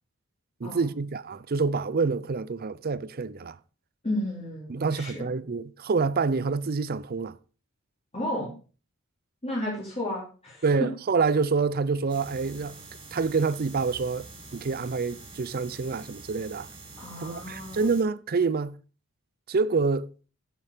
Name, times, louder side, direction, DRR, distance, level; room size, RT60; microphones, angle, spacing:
voice 1, 0.6-3.6 4.7-7.3 10.6-12.8 13.1-14.3 14.5-16.7 17.2-18.8 19.5-20.1, right 4 dB, 45° right, 0.5 m, -27 dB
voice 2, 4.0-5.3 8.1-8.5 9.4-10.7 17.0-17.9, left 1 dB, 25° left, 3.5 m, -33 dB
sound 1, 12.1-18.0, right 3 dB, 20° right, 2.6 m, -46 dB
11.0 x 7.9 x 5.0 m
head